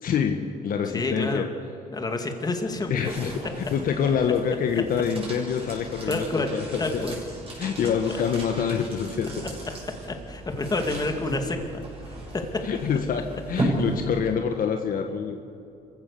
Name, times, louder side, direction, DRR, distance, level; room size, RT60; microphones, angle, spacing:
voice 1, 0.0-1.5 2.9-7.1 7.6-9.5 12.6-15.4, left 7 dB, 55° left, 4 dB, 1.4 m, -26 dB
voice 2, 0.9-1.4 1.9-3.1 6.1-6.5 6.8-7.2 8.1-8.2 10.3-12.4, left 2 dB, 20° left, 4 dB, 2.4 m, -29 dB
sound 1, 2.3-14.5, right 1 dB, 35° right, 6.9 m, -35 dB
26.0 x 15.5 x 6.9 m, 2.6 s
cardioid pair, 110°, 17 cm